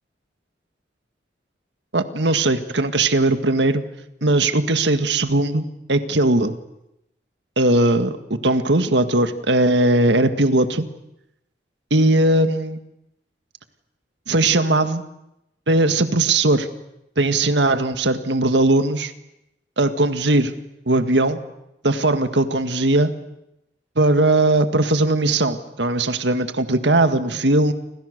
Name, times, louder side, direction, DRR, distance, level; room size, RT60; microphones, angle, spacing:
voice 1, 1.9-3.8 4.2-6.5 7.6-10.9 11.9-12.8 14.3-15.0 15.7-16.7 17.2-19.1 19.8-20.5 20.9-21.4 21.8-23.1 24.0-27.7, right 2 dB, 75° right, 9 dB, 1.8 m, -19 dB
29.5 x 26.0 x 6.7 m, 0.86 s
head